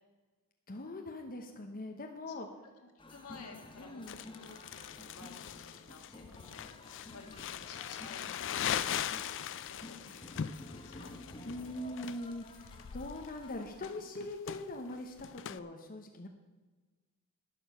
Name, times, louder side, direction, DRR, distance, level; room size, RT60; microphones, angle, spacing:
voice 1, 0.7-2.5 3.8-4.2 9.8-9.9 11.4-16.3, left 1 dB, 40° left, 3 dB, 0.9 m, -42 dB
voice 2, 2.8-6.7 7.1-10.3 10.7-11.1, left 4 dB, 80° left, 4 dB, 1.9 m, -54 dB
sound 1, 3.0-13.7, left 2 dB, 25° left, 1.2 m, -52 dB
Crumpling crinkling, 4.1-15.6, left 9 dB, 60° left, 0.4 m, -40 dB
11.5 x 10.5 x 5.6 m, 1.3 s
head